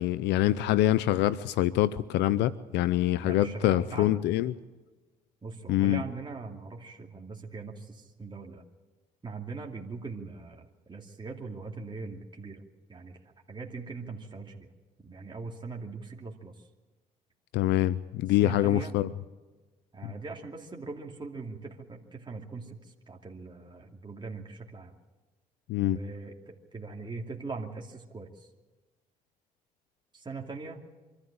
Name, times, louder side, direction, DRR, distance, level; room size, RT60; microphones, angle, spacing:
voice 1, 0.0-4.5 5.7-6.0 17.5-19.1 20.0-20.1 25.7-26.0, left 14 dB, 75° left, 17 dB, 0.6 m, -25 dB
voice 2, 3.2-4.2 5.4-8.6 9.2-12.6 12.9-13.2 13.5-14.7 15.0-16.7 18.4-19.0 19.9-24.9 25.8-28.5 30.1-30.8, right 4 dB, 25° right, 0 dB, 2.7 m, -41 dB
24.5 x 13.0 x 8.7 m, 1.2 s
supercardioid pair, 65°, 18 cm